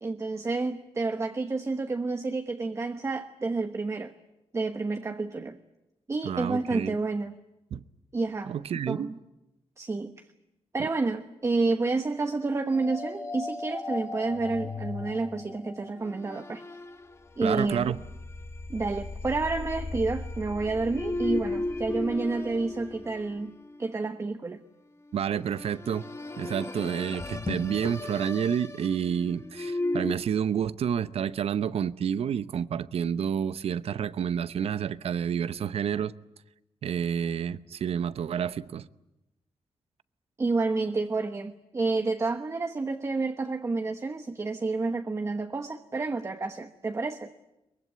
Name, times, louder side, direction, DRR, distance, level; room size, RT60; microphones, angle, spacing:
voice 1, 0.0-4.1 4.5-5.6 6.1-7.3 8.1-8.5 8.9-9.2 9.8-10.2 10.7-16.6 17.4-18.0 18.7-23.5 23.8-24.6 40.4-47.3, right 3 dB, 25° right, 1.2 m, -29 dB
voice 2, 6.2-6.9 7.7-7.8 8.5-9.1 10.8-10.9 17.4-18.0 25.1-26.1 26.4-36.1 36.8-38.9, right 8 dB, 75° right, 0.8 m, -29 dB
sound 1, 12.7-23.8 25.3-30.1, left 2 dB, 25° left, 1.4 m, -36 dB
23.0 x 22.5 x 9.5 m
wide cardioid pair, 125°, 10 cm